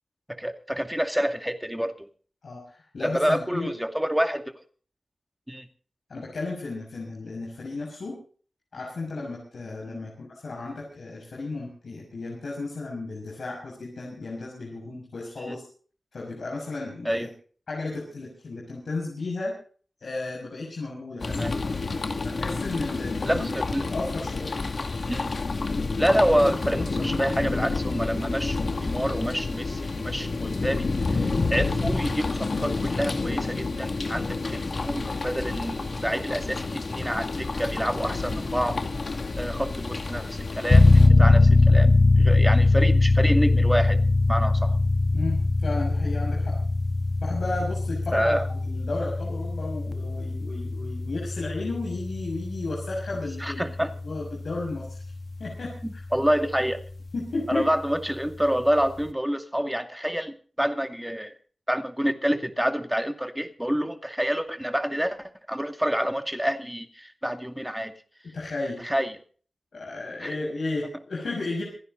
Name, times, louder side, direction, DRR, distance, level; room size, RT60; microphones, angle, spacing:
voice 1, 0.3-2.1 3.0-4.6 5.5-5.7 9.9-10.0 15.5-15.6 17.0-17.3 21.3-21.5 23.3-23.8 25.1-25.3 26.0-31.2 31.5-38.8 39.4-44.0 44.3-44.8 48.1-48.4 53.4-53.9 55.8-56.8 57.5-61.3 61.7-67.9 68.8-69.1 70.2-70.4, equal, 5° right, 6 dB, 2.4 m, -27 dB
voice 2, 2.4-3.7 6.1-8.1 8.7-15.6 16.1-17.3 17.7-19.5 20.0-21.6 22.2-24.6 31.3-31.5 45.1-46.6 47.2-55.0 55.4-56.0 57.1-57.6 68.3-68.9 69.7-71.6, left 3 dB, 80° left, -3 dB, 6.5 m, -33 dB
sound 1, 21.2-41.1, left 3 dB, 60° left, 2.3 m, -29 dB
sound 2, 40.7-55.1, left 3 dB, 40° left, 1.6 m, -21 dB
27.5 x 10.5 x 4.0 m, 0.43 s
wide cardioid pair, 75°, 0 cm